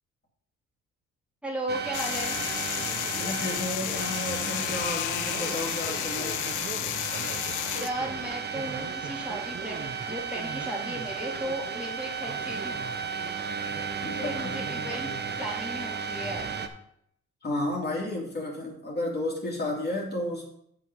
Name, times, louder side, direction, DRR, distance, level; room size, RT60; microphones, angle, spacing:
voice 1, 1.4-2.4 7.8-12.7 14.2-15.1 15.4-16.6, right 1 dB, 5° right, -3 dB, 2.5 m, -35 dB
sound 1, 1.7-16.7, right 6 dB, 35° right, 0.9 m, -34 dB
sound 2, 1.9-7.9, left 13 dB, 80° left, 0.6 m, -32 dB
voice 2, 3.1-6.5 14.0-14.6 17.4-20.5, left 1 dB, 35° left, -2 dB, 2.8 m, -32 dB
7.9 x 5.9 x 5.6 m, 0.71 s
cardioid pair, 90°, 30 cm